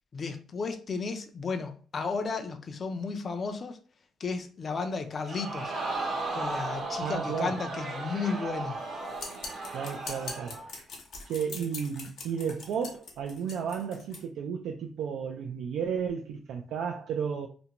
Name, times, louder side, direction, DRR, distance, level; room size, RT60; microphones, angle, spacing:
voice 1, 0.1-3.8 4.2-5.7 6.3-8.8, left 4 dB, 40° left, 0.4 m, -33 dB
Crowd, 5.2-10.7 11.1-11.2, right 3 dB, 55° right, 0.8 m, -35 dB
voice 2, 7.0-7.6 9.7-10.6 11.2-17.5, right 7 dB, 80° right, 0.3 m, -33 dB
sound 1, 9.2-14.2, left 4 dB, 65° left, 0.7 m, -42 dB
2.5 x 2.1 x 2.8 m
cardioid pair, 90°, 0 cm